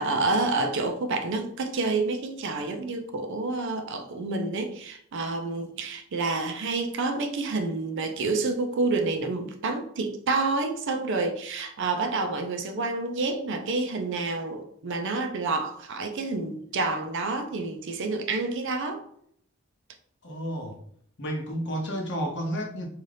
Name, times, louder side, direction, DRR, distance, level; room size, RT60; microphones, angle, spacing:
voice 1, 0.0-19.0, right 3 dB, 60° right, 0.4 m, -28 dB
voice 2, 20.2-20.8 21.2-22.9, equal, 60° left, 0.7 m, -31 dB
2.7 x 2.4 x 3.2 m
head